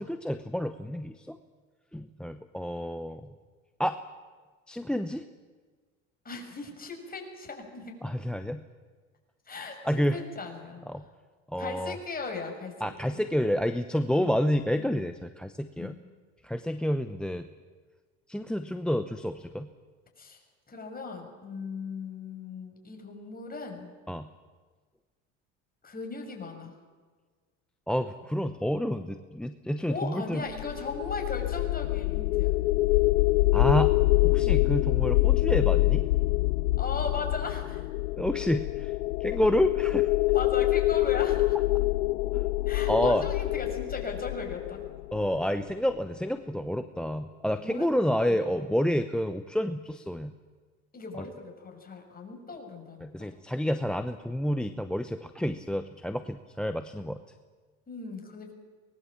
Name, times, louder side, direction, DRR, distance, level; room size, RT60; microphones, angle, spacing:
voice 1, 0.0-1.4 1.9-3.3 3.8-4.0 4.7-5.2 8.0-8.6 9.8-10.2 10.9-11.0 11.5-12.0 12.8-16.0 16.4-17.5 18.3-19.7 24.1-24.3 27.9-30.4 33.5-33.9 34.2-36.0 38.2-38.9 39.2-40.1 42.3-42.4 42.9-43.2 45.1-50.3 53.0-57.2, equal, ahead, 11 dB, 0.8 m, -29 dB
voice 2, 6.2-8.0 9.5-10.8 11.6-13.2 14.0-14.4 14.7-15.0 15.8-16.0 20.2-20.4 20.7-23.9 25.8-26.8 29.9-32.5 36.8-37.8 40.3-41.6 42.7-44.8 47.6-48.7 50.9-53.3 57.9-58.5, left 4 dB, 25° left, 3 dB, 6.3 m, -38 dB
sound 1, 30.5-45.6, left 19 dB, 90° left, 0.6 m, -25 dB
24.0 x 20.5 x 7.4 m, 1.5 s
supercardioid pair, 90°, 38 cm